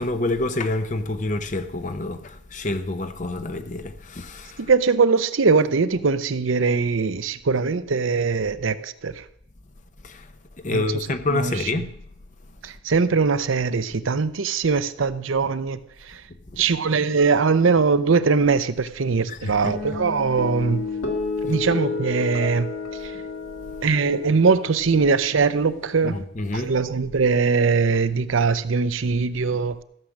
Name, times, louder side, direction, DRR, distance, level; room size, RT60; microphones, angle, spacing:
voice 1, 0.0-4.7 10.0-10.3 10.6-11.9 16.5-16.7 19.3-20.0 21.5-21.6 26.0-26.7, left 2 dB, 40° left, 0.8 m, -28 dB
voice 2, 4.6-9.2 10.7-11.5 12.6-15.8 16.1-16.2 16.6-20.8 21.4-22.7 23.0-23.1 23.8-26.2 26.5-29.8, right 4 dB, 75° right, 0.6 m, -21 dB
sound 1, 19.6-26.2, left 4 dB, 80° left, 2.8 m, -31 dB
15.0 x 6.4 x 7.3 m
head